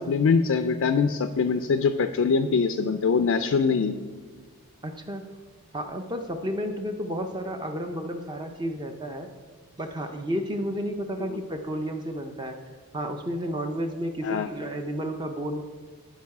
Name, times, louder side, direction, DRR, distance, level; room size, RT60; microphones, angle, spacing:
voice 1, 0.0-4.0 14.2-14.5, left 5 dB, 60° left, 8 dB, 0.4 m, -23 dB
voice 2, 4.8-5.3 5.7-9.3 9.8-12.6 12.9-15.6, equal, 20° right, 5 dB, 0.5 m, -32 dB
13.0 x 4.6 x 4.8 m, 1.5 s
head